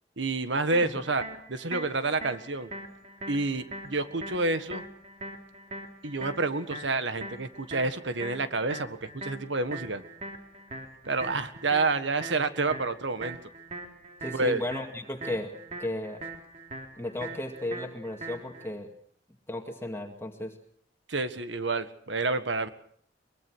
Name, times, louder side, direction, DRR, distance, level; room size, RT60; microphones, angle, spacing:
voice 1, 0.2-1.2 1.5-2.7 3.3-4.8 6.0-10.0 11.0-13.4 14.3-14.6 21.1-22.7, right 3 dB, 85° right, 10 dB, 1.6 m, -29 dB
sound 1, 0.7-18.7, right 2 dB, 40° right, 3.7 m, -42 dB
voice 2, 14.2-15.5 15.8-16.2 17.0-18.9 19.5-20.6, left 1 dB, 15° left, 3 dB, 2.1 m, -34 dB
23.5 x 22.0 x 6.3 m, 0.62 s
head